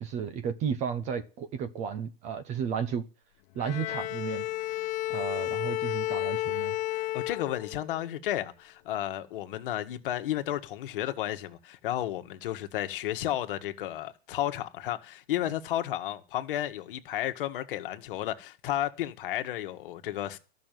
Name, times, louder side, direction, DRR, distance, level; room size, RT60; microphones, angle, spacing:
voice 1, 0.0-3.0 3.5-4.5 5.1-6.8, right 7 dB, 25° right, 0.7 m, -33 dB
Bowed string instrument, 3.6-8.0, left 16 dB, 30° left, 0.5 m, -32 dB
voice 2, 7.1-20.4, left 13 dB, 60° left, 1.5 m, -32 dB
13.0 x 6.3 x 9.2 m
supercardioid pair, 160°, 30 cm